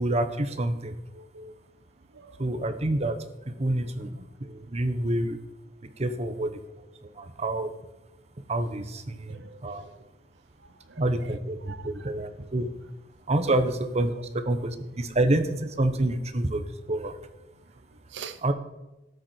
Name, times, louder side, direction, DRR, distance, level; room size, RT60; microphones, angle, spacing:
voice 1, 0.0-1.0 2.4-3.2 3.4-5.4 5.8-7.7 8.5-9.8 11.0-12.7 13.3-17.2 18.4-18.5, right 1 dB, 35° right, 1.0 m, -28 dB
voice 2, 1.1-1.6 2.1-2.4 9.3-9.9 10.6-11.3 11.7-12.1 18.1-18.5, right 5 dB, 70° right, 0.8 m, -45 dB
12.5 x 9.3 x 4.4 m
head